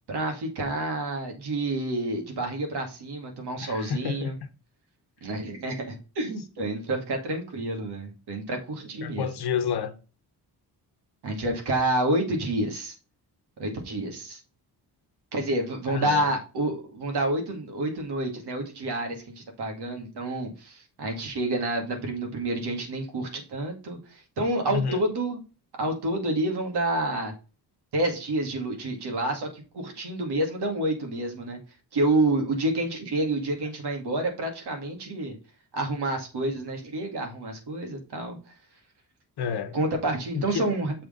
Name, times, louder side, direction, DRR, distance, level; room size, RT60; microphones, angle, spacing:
voice 1, 0.1-4.3 5.2-9.3 11.2-12.9 13.6-14.4 15.3-25.4 25.8-27.3 27.9-31.6 31.9-35.4 35.7-38.4 39.7-40.9, right 1 dB, 75° right, 2.4 m, -29 dB
voice 2, 3.6-4.5 9.0-9.9 15.9-16.3 24.7-25.0 39.4-39.8 40.3-40.7, left 7 dB, 70° left, 1.0 m, -30 dB
6.7 x 3.8 x 5.2 m
cardioid pair, 90°, 40 cm